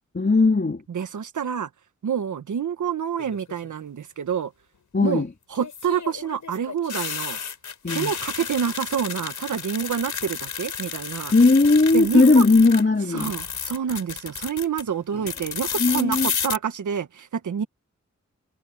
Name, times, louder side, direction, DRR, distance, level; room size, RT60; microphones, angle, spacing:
voice 1, 0.1-0.8 4.9-5.3 7.8-8.1 11.3-13.3 15.8-16.3, left 3 dB, 35° left, 3.3 m, -18 dB
voice 2, 0.9-1.7 2.0-4.5 5.0-5.2 5.5-7.4 7.9-11.3 11.9-12.4 13.1-17.6, right 7 dB, 90° right, 1.5 m, -28 dB
sound 1, 3.2-3.7 5.6-12.8 13.1-14.8 15.3-16.6, left 6 dB, 90° left, 5.6 m, -32 dB
cardioid pair, 55°, 29 cm